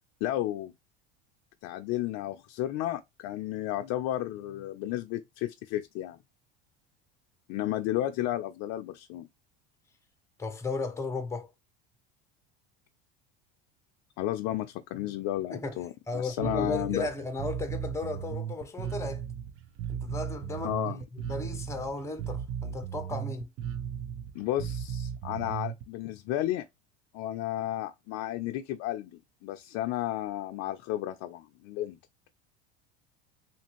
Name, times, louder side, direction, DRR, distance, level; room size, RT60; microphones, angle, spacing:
voice 1, 0.2-0.7 1.6-6.2 7.5-9.3 14.2-17.1 20.6-21.0 24.3-26.7 27.1-29.1 29.4-32.0, left 13 dB, 55° left, 0.5 m, -32 dB
voice 2, 10.4-11.5 15.5-15.8 16.1-19.2 19.9-23.5, left 3 dB, 10° left, 0.6 m, -35 dB
Bass guitar, 16.4-25.8, right 9 dB, 45° right, 0.6 m, -36 dB
2.8 x 2.5 x 2.9 m
hypercardioid pair, 90°, 31 cm